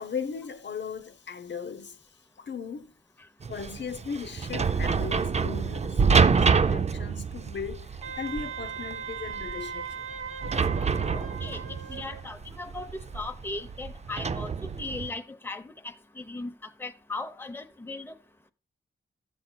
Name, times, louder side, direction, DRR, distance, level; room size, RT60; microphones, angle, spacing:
voice 1, 0.0-2.0 2.4-2.9 3.5-10.0, left 6 dB, 60° left, 0.8 m, -37 dB
sound 1, 3.4-15.1, right 5 dB, 30° right, 0.4 m, -27 dB
Wind instrument woodwind instrument, 8.0-12.2, right 6 dB, 75° right, 1.1 m, -38 dB
voice 2, 11.1-18.2, left 2 dB, 10° left, 0.7 m, -38 dB
13.0 x 7.7 x 2.2 m
wide cardioid pair, 80°, 21 cm